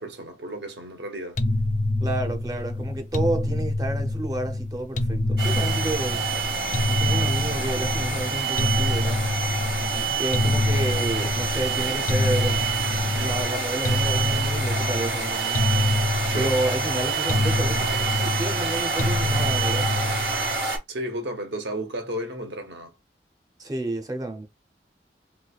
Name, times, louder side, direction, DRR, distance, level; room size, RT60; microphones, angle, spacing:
voice 1, 0.0-1.4 9.8-10.2 16.3-16.6 20.9-22.9, right 1 dB, 75° right, 0.8 m, -33 dB
sound 1, 1.4-20.7, left 2 dB, 40° left, 0.4 m, -26 dB
voice 2, 2.0-6.2 6.9-9.2 10.2-12.7 13.1-15.6 16.3-19.9 23.6-24.5, right 2 dB, 20° right, 0.5 m, -30 dB
sound 2, 5.4-13.5, left 1 dB, 70° left, 0.9 m, -39 dB
sound 3, 5.4-20.8, right 5 dB, 60° right, 1.2 m, -27 dB
3.1 x 3.0 x 2.3 m
head